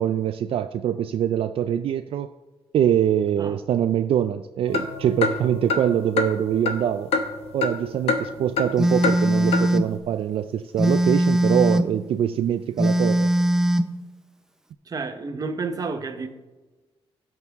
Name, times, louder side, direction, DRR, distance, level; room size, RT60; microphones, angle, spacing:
voice 1, 0.0-2.3 2.7-7.1 7.5-13.3, right 10 dB, 70° right, 9 dB, 0.4 m, -24 dB
sound 1, 4.7-7.8 8.1-8.7 9.0-9.2 9.5-9.6, left 4 dB, 85° left, 1.0 m, -26 dB
Telephone, 8.8-9.9 10.8-11.9 12.8-13.9, right 1 dB, 5° right, 0.5 m, -20 dB
voice 2, 14.9-16.3, right 4 dB, 40° right, 7 dB, 1.0 m, -30 dB
16.0 x 6.1 x 3.6 m, 1.2 s
cardioid pair, 115°, 10 cm